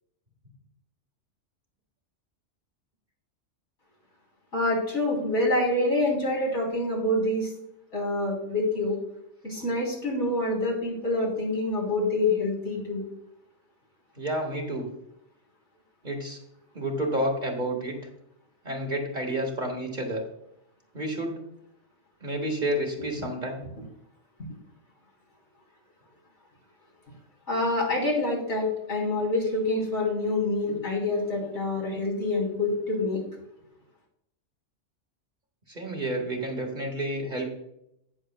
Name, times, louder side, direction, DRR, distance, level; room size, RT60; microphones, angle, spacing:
voice 1, 4.5-7.5 7.9-9.0 9.4-13.1 27.5-33.2, left 2 dB, 85° left, -3 dB, 3.8 m, -26 dB
voice 2, 14.2-14.9 16.0-16.4 16.7-18.0 18.6-20.2 20.9-21.3 22.2-23.6 35.7-37.5, right 1 dB, 45° right, 1 dB, 1.8 m, -30 dB
17.0 x 6.6 x 2.2 m, 0.80 s
omnidirectional pair, 1.2 m